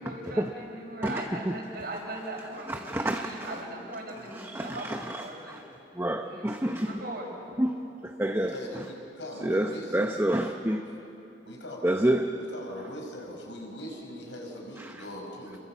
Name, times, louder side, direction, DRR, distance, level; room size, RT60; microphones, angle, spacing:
voice 1, 0.0-5.6 6.1-7.3, right 1 dB, 60° right, -1 dB, 6.3 m, -39 dB
voice 2, 2.7-3.6 4.3-5.6 5.9-7.0 7.6-8.8 9.4-10.8 11.8-12.4 14.8-14.9, right 1 dB, 15° right, 4 dB, 0.8 m, -29 dB
voice 3, 8.5-10.3 11.5-11.9 12.5-15.6, left 1 dB, 85° left, 1 dB, 5.3 m, -41 dB
29.0 x 23.0 x 7.3 m, 2.9 s
head